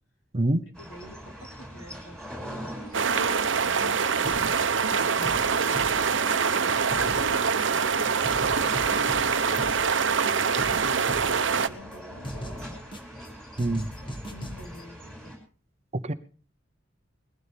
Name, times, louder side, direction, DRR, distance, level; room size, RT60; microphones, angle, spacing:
sound 1, 0.7-15.4, equal, 5° left, 6.0 m, -43 dB
voice 1, 0.8-4.6 4.9-8.3 10.0-12.8 14.0-15.4, equal, 80° left, 1 dB, 4.2 m, -47 dB
sound 2, 2.9-11.7, right 6 dB, 70° right, 0.9 m, -24 dB
sound 3, 4.2-4.6 4.9-6.6 6.9-7.9 8.2-9.9 10.2-11.9 12.2-13.3 13.6-14.8, equal, 25° left, 1.7 m, -39 dB
voice 2, 13.6-13.9 15.9-16.1, right 1 dB, 35° right, 12 dB, 0.8 m, -25 dB
21.0 x 15.5 x 3.5 m, 0.39 s
head